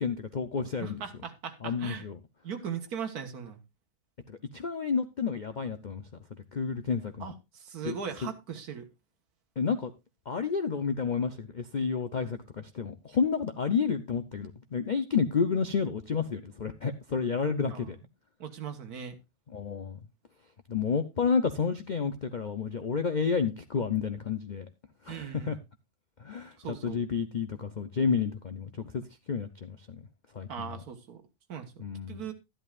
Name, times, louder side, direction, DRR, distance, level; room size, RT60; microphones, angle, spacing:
voice 1, 0.0-1.0 1.6-2.2 4.3-6.1 6.5-7.3 7.8-8.3 9.6-9.9 10.3-18.0 19.5-20.0 20.7-24.7 25.0-25.6 26.2-29.8 30.3-30.7 31.8-32.2, left 5 dB, 85° left, 0.4 m, -30 dB
voice 2, 0.8-2.0 2.4-3.6 7.2-8.9 17.7-17.9 18.4-19.2 25.1-25.6 26.6-27.0 30.5-31.2 31.5-32.3, right 7 dB, 65° right, 1.8 m, -39 dB
12.5 x 11.0 x 2.4 m
omnidirectional pair, 1.8 m